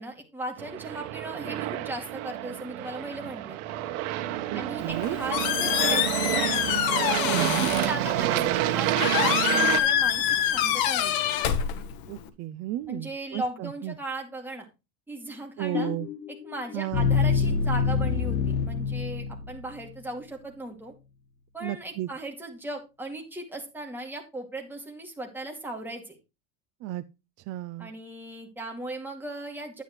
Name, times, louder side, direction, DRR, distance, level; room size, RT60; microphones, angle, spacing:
voice 1, 0.0-3.6 4.5-6.6 7.5-11.1 12.9-14.7 15.1-15.9 16.4-20.9 21.5-26.2 27.8-29.8, right 2 dB, 5° right, 2.3 m, -37 dB
Aircraft, 0.6-9.8, right 13 dB, 85° right, 1.2 m, -28 dB
voice 2, 4.5-5.2 7.3-7.7 12.1-13.9 15.6-16.1 16.7-17.1 21.6-22.1 26.8-27.0 27.5-27.9, right 14 dB, 40° right, 0.4 m, -33 dB
Squeak, 4.8-12.3, left 10 dB, 55° left, 1.3 m, -26 dB
sound 1, 15.7-19.8, left 5 dB, 85° left, 1.6 m, -26 dB
9.7 x 9.1 x 3.1 m
cardioid pair, 150°, 41 cm